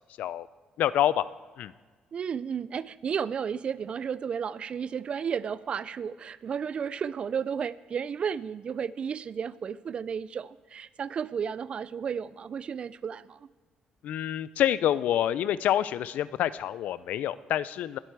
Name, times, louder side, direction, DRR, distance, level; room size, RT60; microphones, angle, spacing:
voice 1, 0.8-1.2 1.6-1.7 14.0-18.0, left 11 dB, 70° left, 17 dB, 0.4 m, -27 dB
voice 2, 2.1-13.4, right 7 dB, 40° right, 19 dB, 0.4 m, -33 dB
20.5 x 8.1 x 4.6 m, 1.4 s
cardioid pair, 125°, 3 cm